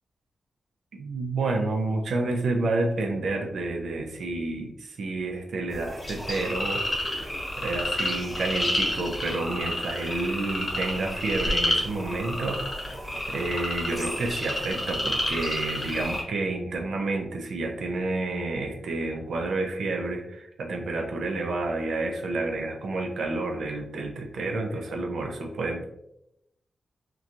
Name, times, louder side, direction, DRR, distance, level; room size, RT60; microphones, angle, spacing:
voice 1, 0.9-7.3 7.6-12.6 13.3-25.8, right 2 dB, 85° right, 3 dB, 0.5 m, -29 dB
sound 1, 5.7-16.2, left 1 dB, 25° left, 0.9 m, -30 dB
2.9 x 2.2 x 2.5 m, 0.82 s
wide cardioid pair, 120°, 0 cm